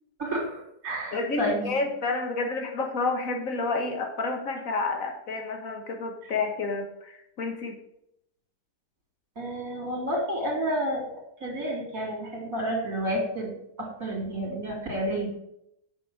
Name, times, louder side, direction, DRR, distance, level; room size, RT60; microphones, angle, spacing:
voice 1, 0.2-1.7 9.4-11.0 11.4-13.5 13.8-15.3, right 1 dB, 60° right, 0 dB, 4.0 m, -30 dB
voice 2, 1.1-7.8, left 3 dB, 55° left, 4 dB, 2.0 m, -30 dB
9.2 x 6.7 x 6.5 m, 0.78 s
omnidirectional pair, 1.7 m